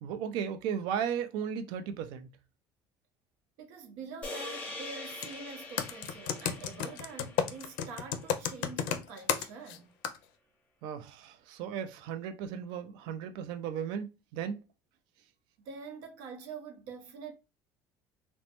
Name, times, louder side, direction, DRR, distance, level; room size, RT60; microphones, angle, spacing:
voice 1, 0.0-2.3 10.8-14.6, right 8 dB, 60° right, 0.4 m, -35 dB
voice 2, 3.6-9.9 15.6-17.3, right 5 dB, 75° right, 0.8 m, -45 dB
sound 1, 4.2-8.6, left 2 dB, 15° left, 0.7 m, -44 dB
Computer keyboard, 5.1-5.3 5.8-9.8 10.0-10.2, left 9 dB, 70° left, 0.4 m, -32 dB
3.0 x 2.1 x 2.9 m
cardioid pair, 175°, 9 cm